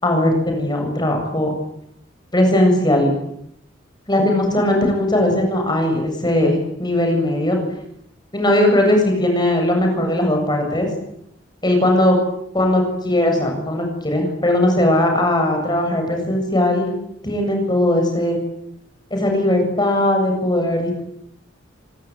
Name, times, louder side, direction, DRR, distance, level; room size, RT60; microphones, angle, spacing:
voice 1, 0.0-1.5 2.3-3.1 4.1-7.6 8.3-10.9 11.6-12.2 12.5-16.9 17.2-18.4 19.1-21.0, left 1 dB, 20° left, 3 dB, 7.8 m, -18 dB
26.0 x 23.0 x 9.3 m, 0.74 s
head